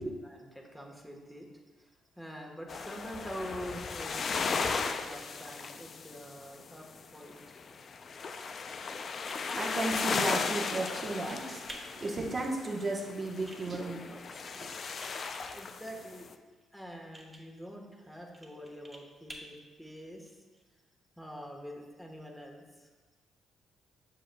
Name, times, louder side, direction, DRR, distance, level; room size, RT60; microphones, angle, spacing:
voice 1, 0.2-1.5 1.8-7.4 15.5-16.3 16.7-20.3 21.2-22.9, equal, 5° left, 0 dB, 1.3 m, -45 dB
sound 1, 2.7-7.1 7.3-16.3, left 5 dB, 50° left, 0.4 m, -36 dB
sound 2, 9.1-20.6, right 1 dB, 15° right, 1.2 m, -54 dB
voice 2, 9.5-14.8, right 2 dB, 35° right, -2 dB, 1.0 m, -35 dB
7.8 x 6.4 x 2.3 m, 1.4 s
supercardioid pair, 65°, 0 cm